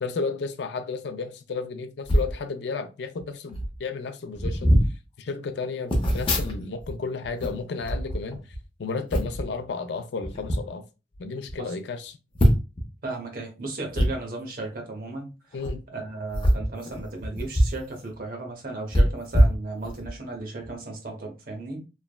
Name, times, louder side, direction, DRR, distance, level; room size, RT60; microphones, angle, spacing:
voice 1, 0.0-4.7 5.2-8.4 8.8-10.8 11.2-12.2 15.5-15.8, left 4 dB, 65° left, 0.4 m, -32 dB
sound 1, 2.0-2.3 3.2-3.3 3.5-3.8 4.3-4.9 5.9-6.9 7.2-8.6 9.1-9.5 10.2-10.6 11.1-11.2 11.5-11.6 12.4-12.8 13.9-14.1 15.5-15.7 16.3-17.8 18.1-18.2 18.9-20.1 20.6-20.8, equal, 30° left, 0.6 m, -23 dB
voice 2, 13.0-15.3 15.9-21.8, right 2 dB, 55° right, 0.8 m, -35 dB
3.1 x 2.0 x 2.2 m
head